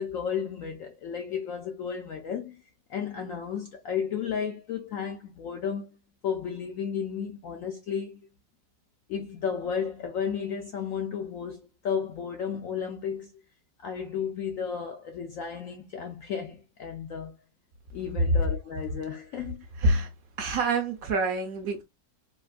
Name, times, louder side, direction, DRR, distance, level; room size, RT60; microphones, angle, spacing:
voice 1, 0.0-2.6 2.9-5.9 6.2-8.2 9.1-13.3 13.8-17.3 17.9-19.6, left 7 dB, 75° left, 0.7 m, -33 dB
voice 2, 19.8-20.1 20.4-21.8, right 2 dB, 65° right, 0.9 m, -26 dB
3.7 x 2.4 x 2.4 m
omnidirectional pair, 1.9 m